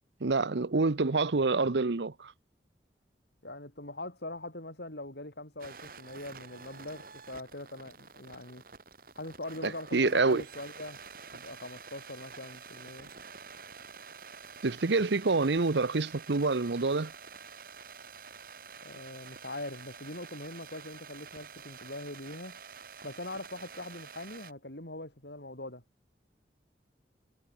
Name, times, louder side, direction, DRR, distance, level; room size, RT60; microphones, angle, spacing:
voice 1, 0.2-2.3 9.6-10.4 14.6-17.1, right 3 dB, 85° right, 0.9 m, -27 dB
voice 2, 3.4-8.6 9.1-11.0 11.3-13.1 18.8-22.6 23.0-25.8, left 2 dB, 70° left, 6.9 m, -42 dB
sound 1, 5.6-24.5, right 5 dB, 55° right, 2.9 m, -49 dB
head